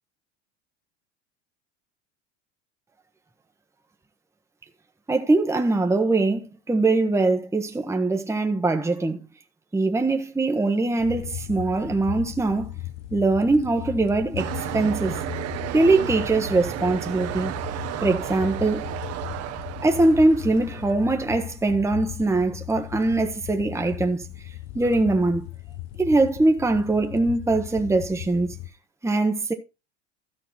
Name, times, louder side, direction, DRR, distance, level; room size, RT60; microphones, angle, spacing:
voice 1, 5.1-9.2 9.7-12.7 13.1-15.2 15.7-17.6 18.0-18.9 19.8-24.3 24.7-25.5 26.0-28.6 29.0-29.5, right 2 dB, 10° right, 1.4 m, -22 dB
sound 1, 11.0-28.7, left 16 dB, 60° left, 1.3 m, -37 dB
sound 2, 14.4-20.9, right 12 dB, 45° right, 1.5 m, -33 dB
13.5 x 5.7 x 4.4 m
hypercardioid pair, 80°, 34 cm